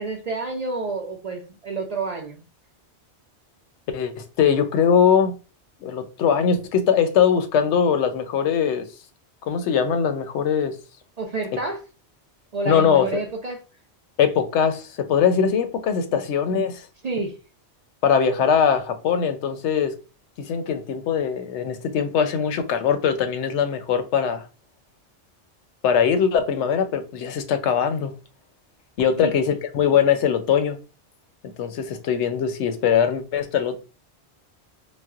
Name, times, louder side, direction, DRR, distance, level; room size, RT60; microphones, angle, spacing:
voice 1, 0.0-2.4 11.2-11.8 12.5-13.6 16.1-16.2 17.0-17.3 29.2-29.3, right 3 dB, 55° right, 0.4 m, -29 dB
voice 2, 3.9-5.3 5.8-8.9 9.4-10.7 12.7-13.2 14.2-16.8 18.0-19.9 20.4-24.5 25.8-28.1 29.0-30.8 31.4-33.8, left 7 dB, 85° left, 0.9 m, -21 dB
4.1 x 2.1 x 2.3 m
omnidirectional pair, 1.1 m